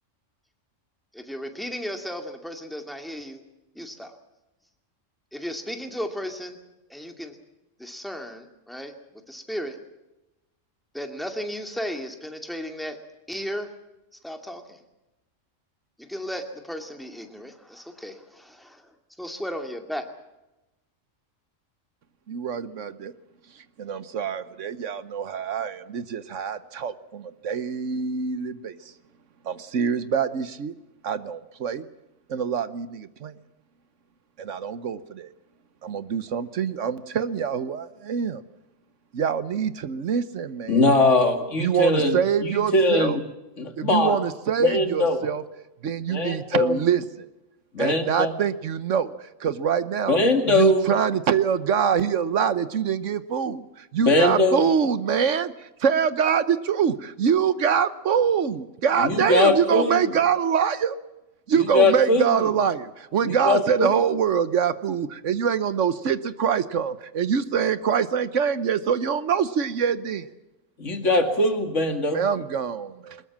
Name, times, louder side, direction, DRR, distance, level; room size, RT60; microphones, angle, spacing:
voice 1, 1.1-3.4 3.8-4.1 5.3-6.6 6.9-7.4 7.8-8.9 9.3-9.8 10.9-13.0 13.3-13.7 14.2-14.8 16.0-18.8 19.2-20.0, equal, ahead, 4 dB, 2.4 m, -34 dB
voice 2, 22.3-23.1 23.8-28.7 29.4-30.7 31.0-31.9 32.3-33.3 34.4-35.3 35.8-38.4 39.1-40.8 41.6-43.2 43.8-45.4 45.8-47.3 47.8-49.1 49.4-50.2 50.5-61.0 61.5-70.3 72.1-73.2, right 7 dB, 70° right, 14 dB, 1.3 m, -24 dB
voice 3, 40.7-43.2 43.6-44.2 44.6-45.2 46.1-46.8 47.7-48.3 50.1-50.9 54.0-54.6 59.0-60.1 61.5-62.4 63.2-64.0 70.8-72.2, left 2 dB, 70° left, 6 dB, 2.6 m, -21 dB
22.0 x 20.5 x 7.4 m, 0.98 s
omnidirectional pair, 1.3 m